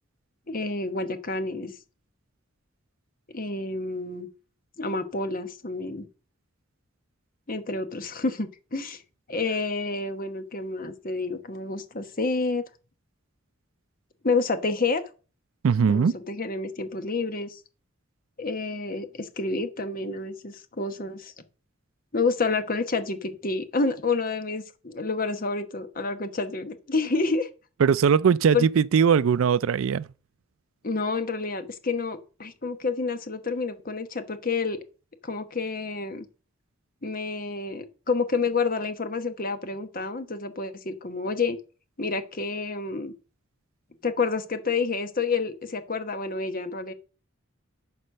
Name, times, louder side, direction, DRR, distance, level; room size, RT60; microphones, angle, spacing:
voice 1, 0.5-1.7 3.3-4.3 4.8-6.1 7.5-9.0 9.3-12.6 14.2-15.0 15.9-17.6 18.4-21.3 22.1-27.5 28.5-28.7 30.8-34.8 35.2-36.2 37.0-41.6 42.0-43.1 44.0-46.9, left 3 dB, 45° left, 1.1 m, -29 dB
voice 2, 15.6-16.1 27.8-30.1, right 6 dB, 80° right, 0.4 m, -20 dB
11.0 x 4.3 x 6.4 m
head